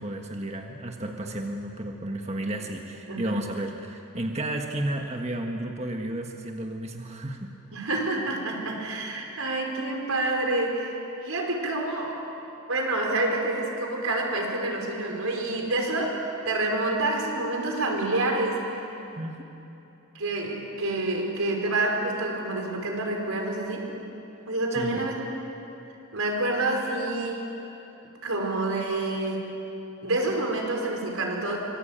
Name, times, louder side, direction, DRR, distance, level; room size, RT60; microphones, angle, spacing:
voice 1, 0.0-7.5 9.4-9.5 19.2-19.5 24.7-25.1, right 1 dB, 30° right, 2 dB, 1.5 m, -32 dB
voice 2, 7.7-10.9 11.2-12.2 12.7-18.6 20.1-23.9 24.5-25.3 26.1-27.4 28.2-29.5 30.0-31.6, right 2 dB, 90° right, 1 dB, 5.1 m, -28 dB
25.0 x 24.0 x 9.0 m, 2.9 s
head